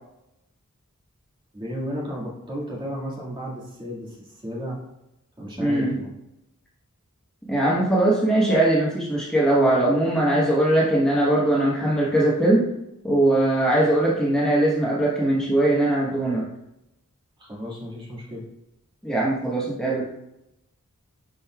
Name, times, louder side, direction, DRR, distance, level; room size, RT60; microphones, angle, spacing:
voice 1, 1.5-4.8 5.4-6.1 17.4-18.4, equal, 20° right, -4 dB, 1.9 m, -33 dB
voice 2, 5.6-6.0 7.5-12.7 13.0-16.4 19.0-20.1, right 1 dB, 5° left, -7 dB, 1.1 m, -20 dB
10.5 x 5.3 x 2.3 m, 0.88 s
head